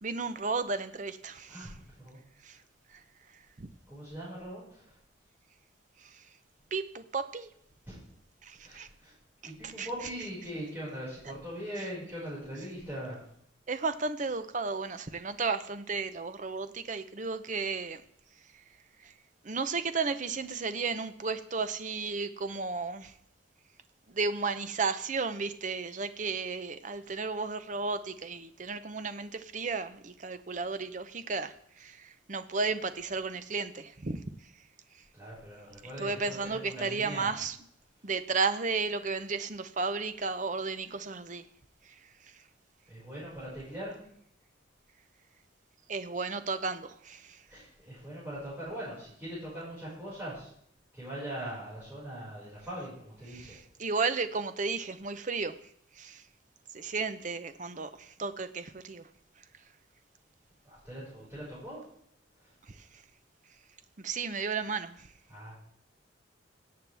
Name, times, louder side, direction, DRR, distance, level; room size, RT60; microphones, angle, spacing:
voice 1, 0.0-1.8 2.4-2.6 2.9-3.0 3.3-3.7 6.0-6.3 6.7-7.5 8.4-8.9 9.4-10.1 11.8-11.9 13.7-18.0 18.4-18.6 19.0-19.1 19.4-23.2 24.1-34.6 34.9-35.0 36.0-37.6 38.0-41.5 41.8-42.4 45.9-47.4 53.3-56.3 56.7-59.1 59.4-59.5 62.6-63.0 64.0-65.1, right 4 dB, 40° right, 11 dB, 0.7 m, -34 dB
voice 2, 1.5-2.2 3.9-5.0 7.9-8.0 8.6-9.1 9.4-13.2 35.1-37.3 42.9-43.9 47.5-50.5 50.9-53.6 60.6-61.8 62.4-62.5 65.3-65.6, equal, 10° right, -10 dB, 5.3 m, -41 dB
17.0 x 7.8 x 3.4 m, 0.68 s
head